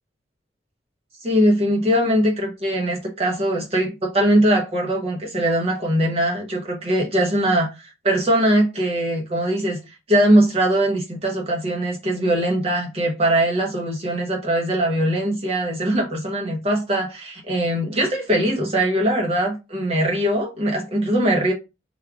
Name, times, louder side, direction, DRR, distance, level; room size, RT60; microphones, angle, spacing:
voice 1, 1.2-9.8 10.1-21.5, right 1 dB, 35° right, 0.7 m, -21 dB
3.4 x 2.3 x 3.5 m
head